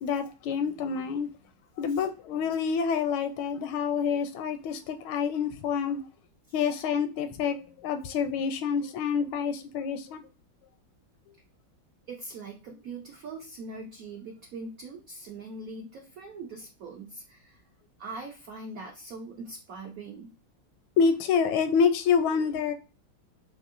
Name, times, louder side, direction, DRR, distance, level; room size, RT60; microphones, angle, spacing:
voice 1, 0.0-1.3 1.8-6.0 6.5-10.2 21.0-22.7, left 6 dB, 85° left, 1.4 m, -27 dB
voice 2, 12.1-17.6 18.0-20.3, right 3 dB, 80° right, 0.7 m, -42 dB
4.6 x 2.7 x 2.5 m
omnidirectional pair, 2.2 m